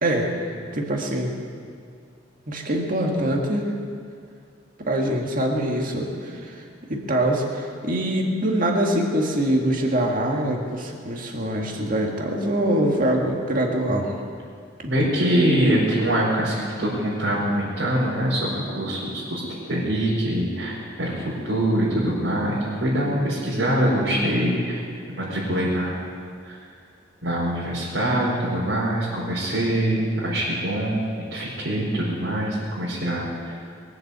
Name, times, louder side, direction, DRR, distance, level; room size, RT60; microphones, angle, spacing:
voice 1, 0.0-0.4 0.7-1.3 2.5-3.7 4.8-6.6 6.9-14.1 14.8-14.9, right 1 dB, 45° right, 0 dB, 2.1 m, -24 dB
voice 2, 14.9-19.4 19.7-26.1 26.4-26.6 27.2-33.6, right 1 dB, 80° right, -9 dB, 4.7 m, -24 dB
22.0 x 8.0 x 8.3 m, 2.2 s
head